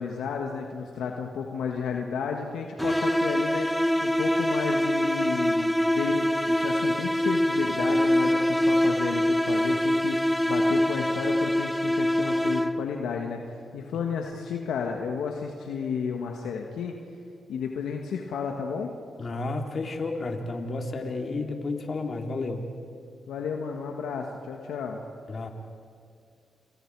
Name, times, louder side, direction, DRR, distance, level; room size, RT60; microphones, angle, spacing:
voice 1, 0.0-17.0 17.5-18.9 23.3-25.0, left 6 dB, 85° left, 2 dB, 1.7 m, -32 dB
sound 1, 2.8-13.0, left 1 dB, 5° left, 0.8 m, -24 dB
voice 2, 19.2-22.6 25.3-25.5, left 3 dB, 55° left, 2 dB, 3.3 m, -31 dB
29.0 x 28.5 x 4.8 m, 2.3 s
supercardioid pair, 55°, 0 cm